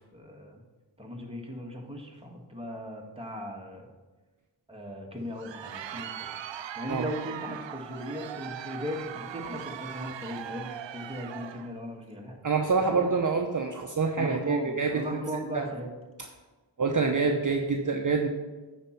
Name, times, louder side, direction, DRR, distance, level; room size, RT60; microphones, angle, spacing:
voice 1, 0.1-0.6 1.0-3.9 4.7-6.3 6.8-12.4 12.9-13.0 14.2-15.9, equal, 15° right, 0 dB, 1.7 m, -38 dB
Crowd, 5.2-11.7, right 9 dB, 85° right, 0.5 m, -40 dB
voice 2, 12.4-15.0 15.5-15.7 16.8-18.3, right 4 dB, 45° right, 3 dB, 0.8 m, -26 dB
9.4 x 4.4 x 5.8 m, 1.3 s
cardioid pair, 45°, 43 cm